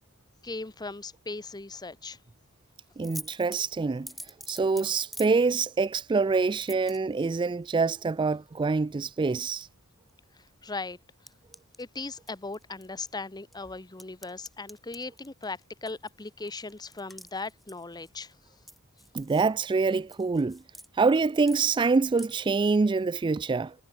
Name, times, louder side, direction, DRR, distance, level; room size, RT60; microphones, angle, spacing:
voice 1, 0.4-2.2 10.6-11.0 11.8-18.3, left 3 dB, 20° left, 0.8 m, -38 dB
sound 1, 3.0-5.3 6.6-7.3 9.2-9.6 10.1-10.2 11.3-11.8 12.3-13.1 13.5-18.3 18.7-19.5 19.8-20.9 21.2-21.6 21.9-22.3, equal, ahead, 2.9 m, -45 dB
voice 2, 3.0-4.1 4.5-9.7 19.1-20.6 20.9-23.7, right 4 dB, 20° right, 0.3 m, -25 dB
head